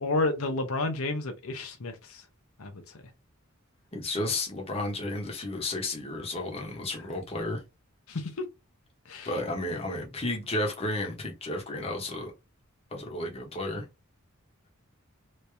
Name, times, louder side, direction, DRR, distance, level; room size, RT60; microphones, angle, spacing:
voice 1, 0.0-2.2 2.6-2.7 8.1-8.4 9.1-9.3, left 2 dB, 85° left, 0.8 m, -30 dB
voice 2, 3.9-7.6 9.2-12.3 12.9-13.9, left 2 dB, 30° left, 1.0 m, -32 dB
3.2 x 2.8 x 3.3 m
head